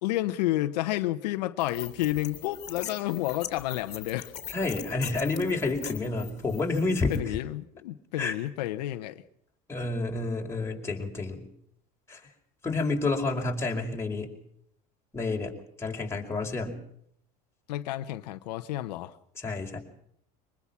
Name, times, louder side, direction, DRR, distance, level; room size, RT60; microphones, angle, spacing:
voice 1, 0.0-4.3 7.1-9.2 17.7-19.2, left 15 dB, 90° left, 1.2 m, -30 dB
sound 1, 1.6-7.2, left 9 dB, 35° left, 3.1 m, -42 dB
voice 2, 4.5-7.2 8.2-8.3 9.7-11.4 12.1-12.2 12.6-14.3 15.1-15.5 15.8-16.8 19.4-19.8, left 3 dB, 15° left, 4.9 m, -29 dB
24.0 x 20.5 x 6.0 m
supercardioid pair, 110°, 21 cm